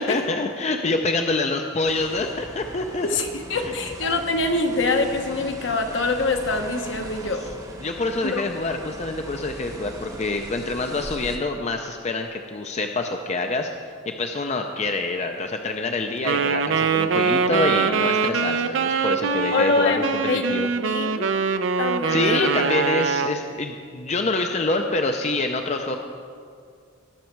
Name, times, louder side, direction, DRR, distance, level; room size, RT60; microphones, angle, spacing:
voice 1, 0.0-3.1 3.5-3.7 7.3-7.5 7.8-13.7 14.1-20.7 22.1-26.0, left 2 dB, 35° left, 4 dB, 0.5 m, -26 dB
sound 1, 1.8-11.4, right 1 dB, 20° right, 0.9 m, -39 dB
voice 2, 3.0-7.4 8.2-8.4 19.5-20.0 20.3-21.3 21.8-22.5, left 3 dB, 70° left, 4 dB, 1.1 m, -24 dB
Wind instrument woodwind instrument, 16.2-23.4, right 5 dB, 75° right, 0.5 m, -23 dB
19.0 x 6.4 x 4.6 m, 2.2 s
head